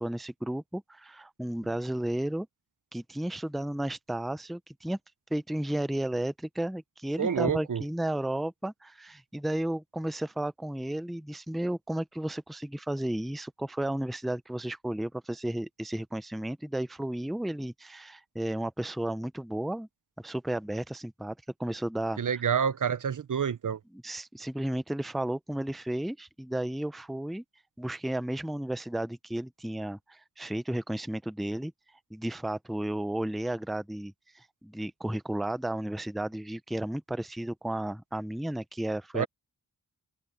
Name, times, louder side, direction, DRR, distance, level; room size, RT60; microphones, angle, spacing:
voice 1, 0.0-2.5 2.9-5.0 5.3-19.9 20.2-22.4 23.9-27.4 27.8-31.7 32.1-39.3, right 1 dB, ahead, 0.5 m, -33 dB
voice 2, 7.2-7.8 22.2-23.8 39.1-39.3, right 7 dB, 55° right, 0.6 m, -28 dB
wide cardioid pair, 100°, 38 cm